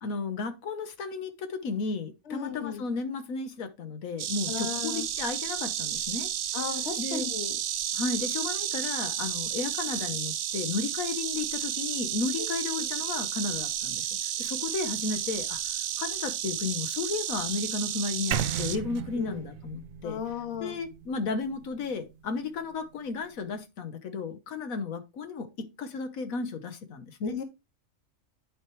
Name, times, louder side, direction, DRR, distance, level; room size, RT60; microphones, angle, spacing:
voice 1, 0.0-6.3 7.0-7.3 7.9-20.2 20.6-27.4, left 4 dB, 85° left, 1.4 m, -34 dB
voice 2, 2.3-2.8 4.5-5.0 6.5-7.6 19.2-19.4 20.0-20.8 27.2-27.4, left 7 dB, 60° left, 1.2 m, -35 dB
Insect, 4.2-18.8, right 10 dB, 65° right, 0.6 m, -32 dB
sound 1, 18.3-22.3, right 9 dB, 85° right, 1.0 m, -35 dB
10.0 x 4.5 x 3.1 m
omnidirectional pair, 1.4 m